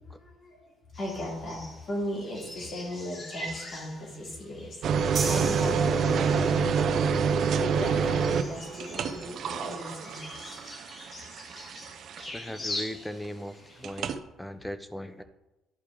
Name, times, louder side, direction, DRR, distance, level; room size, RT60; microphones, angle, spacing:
voice 1, 0.0-10.6, left 1 dB, 45° left, -3 dB, 3.0 m, -37 dB
sound 1, 0.9-14.0, left 1 dB, 30° left, 1.4 m, -43 dB
sound 2, 4.8-12.5 13.8-14.2, right 6 dB, 55° right, 0.6 m, -27 dB
sound 3, 5.2-6.7, right 5 dB, 35° right, 1.1 m, -35 dB
voice 2, 12.2-15.2, equal, 5° left, 11 dB, 0.6 m, -39 dB
11.0 x 4.8 x 3.7 m, 0.97 s
cardioid pair, 110°, 0 cm